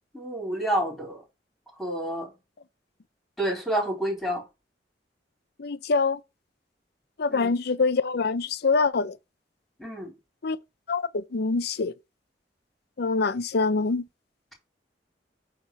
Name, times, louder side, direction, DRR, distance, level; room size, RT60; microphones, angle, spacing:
voice 1, 0.1-1.2 1.8-2.3 3.4-4.4 7.3-7.5 9.8-10.1, right 1 dB, ahead, 3.9 m, -29 dB
voice 2, 5.6-6.2 7.2-9.2 10.4-10.6 10.9-11.9 13.0-14.0, left 4 dB, 60° left, 0.6 m, -25 dB
8.9 x 3.6 x 6.7 m
head